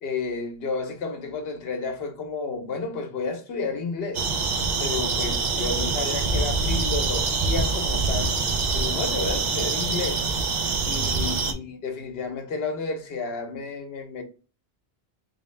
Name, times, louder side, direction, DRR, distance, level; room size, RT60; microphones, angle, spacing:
voice 1, 0.0-4.3 4.8-8.4 8.7-10.2 10.9-14.2, left 4 dB, 70° left, 1.0 m, -31 dB
sound 1, 4.1-11.5, right 4 dB, 55° right, 0.6 m, -25 dB
3.3 x 2.8 x 3.2 m
omnidirectional pair, 1.1 m